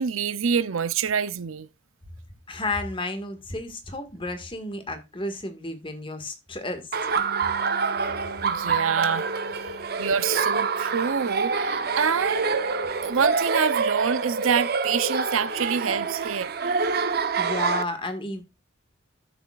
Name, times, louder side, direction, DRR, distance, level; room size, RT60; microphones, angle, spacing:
voice 1, 0.0-1.7 8.4-9.7 10.0-12.5 13.0-16.8, right 6 dB, 90° right, 0.6 m, -26 dB
voice 2, 2.5-6.9 17.4-18.4, left 2 dB, 25° left, 1.8 m, -32 dB
Laughter, 6.9-17.8, right 4 dB, 50° right, 0.9 m, -26 dB
Bass guitar, 7.2-13.4, right 4 dB, 50° left, 5.3 m, -48 dB
13.0 x 6.9 x 2.4 m
head